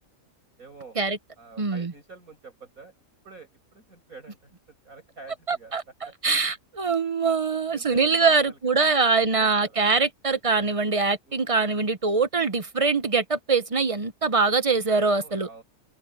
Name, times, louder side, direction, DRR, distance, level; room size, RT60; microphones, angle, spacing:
voice 1, 0.6-1.0 1.4-2.9 3.2-5.7 6.0-6.3 7.5-9.8 11.3-11.5 15.1-15.6, right 4 dB, 85° right, 7.2 m, -47 dB
voice 2, 1.6-1.9 5.5-5.8 6.2-15.5, right 4 dB, 30° right, 0.7 m, -23 dB
omnidirectional pair, 1.4 m